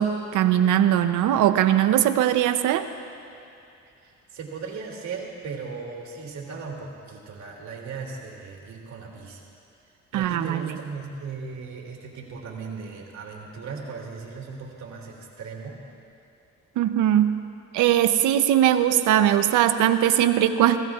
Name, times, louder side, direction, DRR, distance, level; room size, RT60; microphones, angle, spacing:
voice 1, 0.0-2.9 10.1-10.6 16.8-17.4 17.7-20.8, right 11 dB, 90° right, 10 dB, 0.7 m, -20 dB
voice 2, 4.0-9.4 10.1-15.8, right 5 dB, 65° right, -1 dB, 2.6 m, -37 dB
24.5 x 16.5 x 2.4 m, 2.6 s
cardioid pair, 90°, 30 cm